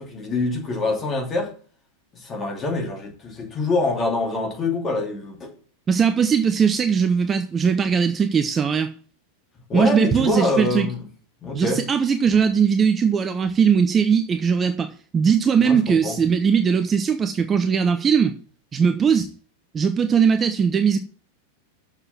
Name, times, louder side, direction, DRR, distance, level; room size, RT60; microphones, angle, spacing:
voice 1, 0.0-1.5 2.1-5.5 9.7-11.0 11.4-11.9 15.6-16.2, left 2 dB, 25° left, 2.9 m, -25 dB
voice 2, 5.9-8.9 9.7-10.9 11.5-18.4 18.7-19.3 19.7-21.0, right 6 dB, 20° right, 0.7 m, -20 dB
6.8 x 6.6 x 7.4 m
figure-of-eight pair, 90°, 0 cm